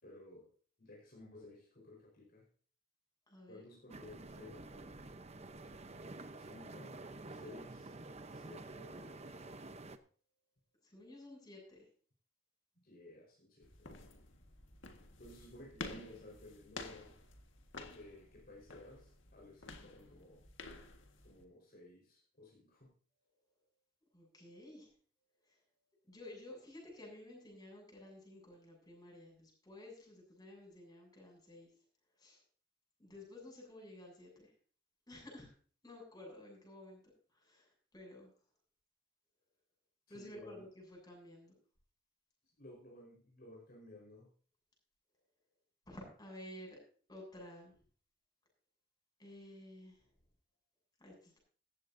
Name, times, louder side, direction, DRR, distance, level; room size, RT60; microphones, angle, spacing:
voice 1, 0.0-0.5 0.8-2.5 3.4-5.0 6.3-7.0 7.3-7.9 8.3-9.4 12.7-13.9 15.2-17.2 17.8-20.4 21.2-22.9 40.1-40.7 42.6-44.3, left 2 dB, 50° left, -3 dB, 4.8 m, -56 dB
voice 2, 3.3-3.6 10.9-11.8 24.1-24.9 26.1-31.7 32.2-32.4 33.0-34.5 35.1-35.5 35.8-37.0 37.4-38.3 40.1-41.5 45.9-46.8 47.1-47.7 49.2-50.0 51.0-51.4, left 1 dB, 20° left, 0 dB, 7.9 m, -53 dB
sound 1, 3.9-10.0, right 2 dB, 35° right, 0.9 m, -49 dB
sound 2, 13.6-21.4, left 3 dB, 70° left, 1.8 m, -51 dB
16.0 x 14.5 x 2.8 m, 0.43 s
head